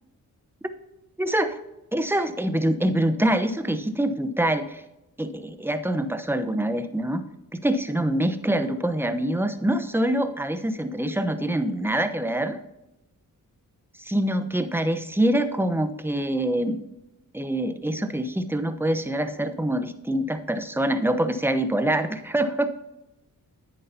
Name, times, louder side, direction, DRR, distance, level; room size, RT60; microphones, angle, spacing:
voice 1, 1.2-1.6 1.9-4.8 5.2-7.2 7.5-12.6 14.0-16.8 17.3-22.7, right 1 dB, 5° right, 9 dB, 0.9 m, -25 dB
10.5 x 8.5 x 2.8 m, 0.92 s
cardioid pair, 65°, 35 cm